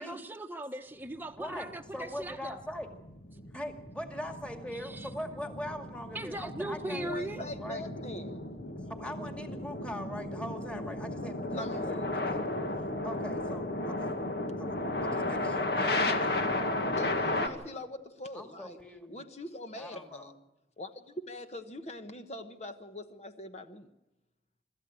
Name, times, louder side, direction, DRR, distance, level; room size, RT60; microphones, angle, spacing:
voice 1, 0.0-2.6 4.7-5.1 6.1-7.4, right 1 dB, 10° right, 5 dB, 1.1 m, -39 dB
voice 2, 1.3-2.9 3.5-7.8 8.9-12.6 13.0-14.1 14.6-16.3 18.3-19.3 19.8-20.3, equal, 5° left, 5 dB, 2.2 m, -42 dB
sound 1, 1.4-17.5, left 2 dB, 60° left, 1.9 m, -34 dB
voice 3, 6.9-8.4 11.5-12.2 16.9-18.8 19.1-20.3 20.8-23.9, left 1 dB, 35° left, 8 dB, 1.1 m, -42 dB
25.5 x 13.5 x 8.4 m, 0.98 s
head